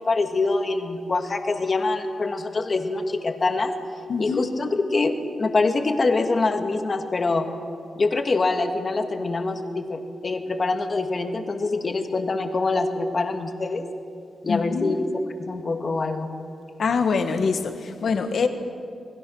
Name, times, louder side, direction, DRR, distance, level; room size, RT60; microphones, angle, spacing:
voice 1, 0.0-3.7 4.2-7.5 7.9-13.9 14.4-15.0 15.4-16.3, left 3 dB, 30° left, 6 dB, 1.6 m, -24 dB
voice 2, 4.1-4.5 14.5-15.0 16.8-18.5, left 5 dB, 55° left, 7 dB, 1.6 m, -24 dB
27.5 x 21.0 x 6.4 m, 2.4 s
wide cardioid pair, 170°, 0 cm